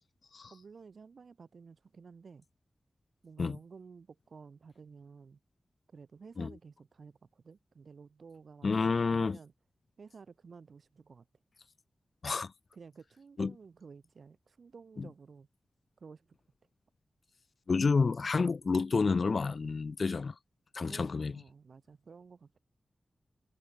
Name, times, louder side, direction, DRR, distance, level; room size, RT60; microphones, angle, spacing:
voice 1, 0.5-2.4 3.2-5.4 5.9-9.5 10.0-11.3 12.7-15.5 16.0-16.4 20.8-22.6, right 5 dB, 60° right, 6.7 m, -53 dB
voice 2, 8.6-9.4 12.2-12.5 13.4-13.5 15.0-15.1 17.7-20.3 20.7-21.3, left 4 dB, 50° left, 0.6 m, -29 dB
wide cardioid pair, 150°, 0 cm